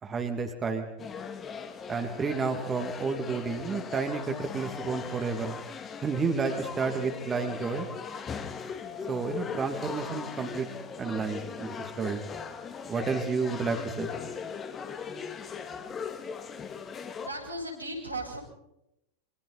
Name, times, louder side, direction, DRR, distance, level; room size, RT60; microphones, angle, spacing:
voice 1, 0.0-0.9 1.9-5.6 6.0-7.9 9.1-10.7 11.0-12.2 12.9-14.1, right 5 dB, 20° right, 5 dB, 2.6 m, -31 dB
sound 1, 1.0-17.3, left 6 dB, 25° left, 2.2 m, -39 dB
voice 2, 17.2-18.4, right 1 dB, 90° right, -2 dB, 6.8 m, -36 dB
28.0 x 26.0 x 4.2 m, 0.86 s
figure-of-eight pair, 90°, 0 cm